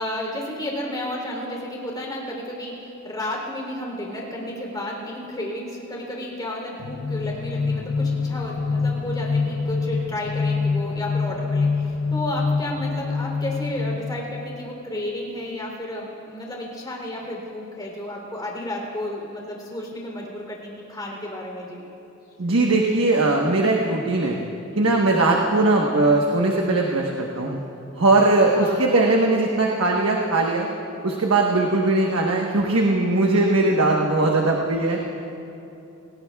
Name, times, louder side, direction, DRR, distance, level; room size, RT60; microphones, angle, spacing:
voice 1, 0.0-21.8 28.5-29.1, left 1 dB, 20° left, -1 dB, 3.3 m, -32 dB
sound 1, 6.8-14.7, left 4 dB, 65° left, 0.5 m, -26 dB
voice 2, 22.4-24.4 24.7-27.6 27.9-30.7 31.0-35.0, right 2 dB, 85° right, -1 dB, 1.2 m, -20 dB
27.0 x 18.5 x 2.4 m, 2.8 s
head